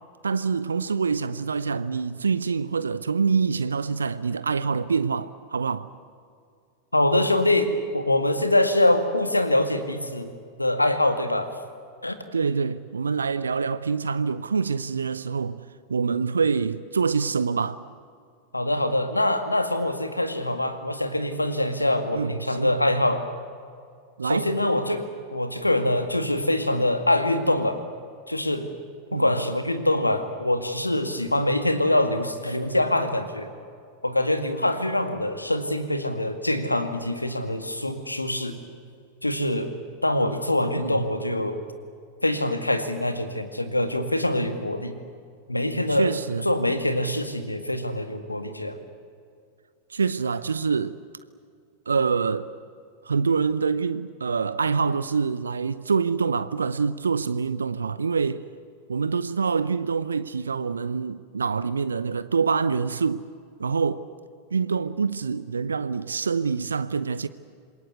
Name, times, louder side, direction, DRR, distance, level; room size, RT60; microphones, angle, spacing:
voice 1, 0.2-5.9 12.3-15.6 15.9-17.8 22.1-22.8 24.2-24.5 29.1-29.3 40.8-41.0 45.9-46.5 49.9-51.0 51.9-52.5 53.0-58.4 58.9-63.3 63.6-64.1 64.5-67.3, right 5 dB, 75° right, 0.7 m, -25 dB
voice 2, 6.9-10.3 10.6-11.5 12.0-12.2 18.5-23.2 24.2-25.0 25.3-27.8 28.3-28.7 29.1-33.5 34.0-38.6 39.2-39.7 40.0-41.6 42.2-45.0 45.5-46.1 46.4-48.8, left 1 dB, 85° left, 2.1 m, -24 dB
27.0 x 22.0 x 8.2 m
figure-of-eight pair, 90°, 0 cm